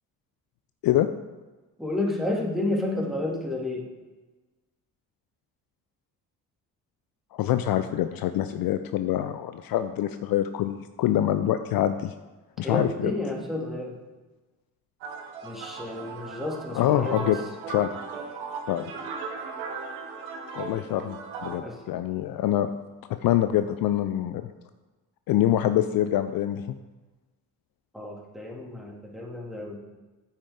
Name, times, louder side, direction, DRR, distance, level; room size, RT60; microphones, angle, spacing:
voice 1, 1.8-3.8 12.6-13.9 15.4-17.3 21.5-21.8 27.9-29.8, left 2 dB, ahead, -2 dB, 2.5 m, -31 dB
voice 2, 7.3-12.1 12.6-13.1 16.7-17.4 17.7-17.9 18.7-18.9 20.6-22.7 23.1-24.5 25.3-26.6, left 12 dB, 50° left, 10 dB, 0.5 m, -25 dB
sound 1, 15.0-21.6, right 5 dB, 70° right, 1.2 m, -37 dB
8.9 x 7.3 x 3.7 m, 1.2 s
figure-of-eight pair, 40°, 46 cm